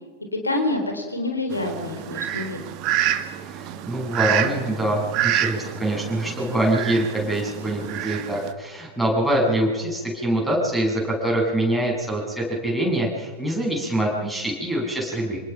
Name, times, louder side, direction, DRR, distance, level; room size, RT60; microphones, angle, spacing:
voice 1, 0.4-2.6, left 2 dB, 80° left, 4 dB, 3.7 m, -26 dB
Fowl, 1.5-8.5, right 11 dB, 40° right, 1.6 m, -28 dB
voice 2, 3.5-15.4, right 1 dB, ahead, -1 dB, 7.7 m, -24 dB
27.0 x 19.5 x 5.9 m, 1.4 s
figure-of-eight pair, 90°, 0 cm